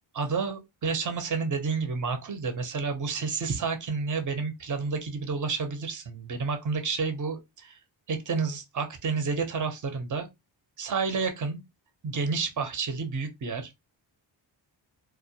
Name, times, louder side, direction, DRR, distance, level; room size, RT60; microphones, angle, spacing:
voice 1, 0.1-7.8 8.1-10.3 10.8-11.6 12.0-13.8, right 4 dB, 40° right, 0.7 m, -30 dB
2.2 x 2.2 x 2.7 m
cardioid pair, 65°, 48 cm